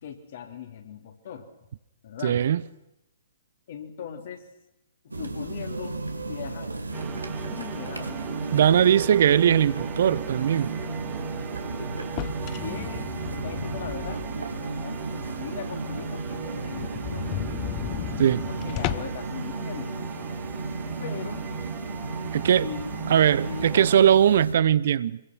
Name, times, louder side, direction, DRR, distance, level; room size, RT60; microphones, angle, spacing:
voice 1, 0.0-1.5 2.0-2.4 3.7-4.4 5.0-6.0 6.3-7.2 7.5-8.2 8.7-8.9 11.6-12.1 12.6-14.3 14.7-17.3 18.5-19.9 21.0-21.5 22.6-22.9 23.4-24.0, left 8 dB, 50° left, 3.6 m, -39 dB
voice 2, 2.2-2.6 8.5-10.7 18.2-18.4 22.3-22.6 23.1-25.2, right 9 dB, 55° right, 0.8 m, -20 dB
sound 1, 5.1-24.5, right 2 dB, 85° right, 2.6 m, -34 dB
sound 2, 6.9-24.0, right 10 dB, 20° right, 2.0 m, -39 dB
sound 3, 12.0-14.6 15.0-15.1 15.5-15.6 15.9-16.0 16.2-16.3 16.7-19.3, left 16 dB, 30° left, 0.9 m, -34 dB
25.0 x 23.0 x 6.2 m
figure-of-eight pair, 125°, 0 cm